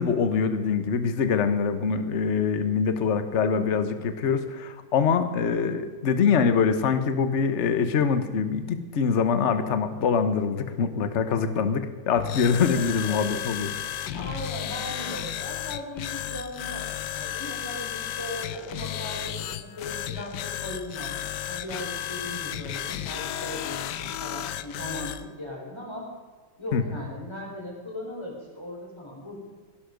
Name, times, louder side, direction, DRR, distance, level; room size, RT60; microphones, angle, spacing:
voice 1, 0.0-13.7 26.7-26.8, left 6 dB, 45° left, 10 dB, 1.2 m, -24 dB
sound 1, 12.2-25.2, left 11 dB, 70° left, 1.2 m, -33 dB
voice 2, 12.8-13.5 14.1-21.1 21.5-26.1 26.6-29.4, left 1 dB, 15° left, -2 dB, 4.2 m, -38 dB
16.5 x 12.0 x 5.2 m, 1.5 s
omnidirectional pair, 2.1 m